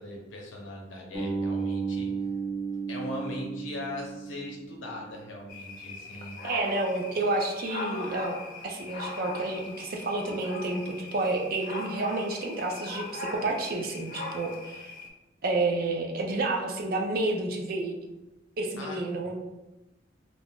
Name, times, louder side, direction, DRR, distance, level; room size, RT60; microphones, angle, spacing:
voice 1, 0.0-2.1 2.9-6.4 18.8-19.0, left 2 dB, 85° left, -1 dB, 0.7 m, -39 dB
Bass guitar, 1.1-5.2, right 5 dB, 20° right, 0.8 m, -33 dB
sound 1, 5.5-15.1, left 3 dB, 45° left, 0.4 m, -40 dB
voice 2, 6.4-8.4 8.6-14.9 15.4-17.9 18.6-19.3, right 2 dB, 50° right, 1 dB, 0.4 m, -30 dB
3.5 x 2.4 x 2.3 m, 1.0 s
head